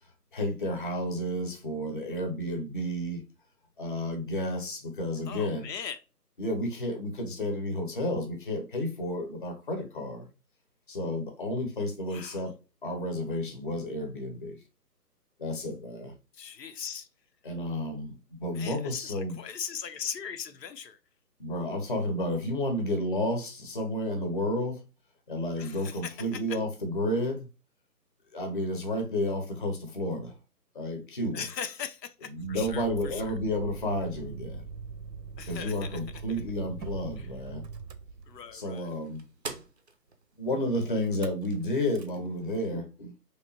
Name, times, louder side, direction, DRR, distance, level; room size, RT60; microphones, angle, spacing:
voice 1, 0.3-3.2 3.8-5.7 6.4-10.3 10.9-12.6 12.8-14.6 15.4-16.1 17.4-19.4 21.4-24.8 25.3-27.5 28.3-30.4 30.7-31.4 32.3-34.6 35.5-37.7 38.5-39.3 40.4-43.1, left 1 dB, 35° left, 0.6 m, -31 dB
voice 2, 5.3-6.0 12.1-12.4 16.3-17.1 18.5-21.0 25.6-26.6 31.3-33.4 35.4-36.0 37.2-37.3 38.3-38.9, left 7 dB, 85° left, 0.6 m, -39 dB
Motor vehicle (road), 32.3-38.8 41.0-41.5 41.8-42.2, right 5 dB, 90° right, 0.7 m, -43 dB
sound 1, 36.4-41.7, right 3 dB, 45° right, 0.4 m, -48 dB
3.2 x 2.8 x 2.6 m
figure-of-eight pair, 155°, 49 cm